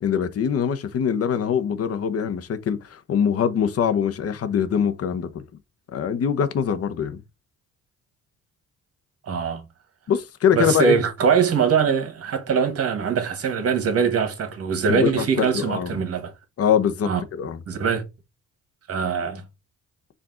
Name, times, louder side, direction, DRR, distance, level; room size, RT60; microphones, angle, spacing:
voice 1, 0.0-5.4 5.9-7.2 10.1-10.9 14.9-15.9 16.6-17.1 17.4-17.6, left 7 dB, 50° left, 0.8 m, -23 dB
voice 2, 9.3-9.6 10.5-16.3 17.0-17.2 17.7-18.0 18.9-19.4, right 6 dB, 50° right, 1.4 m, -22 dB
4.8 x 2.6 x 3.7 m
cardioid pair, 90°, 30 cm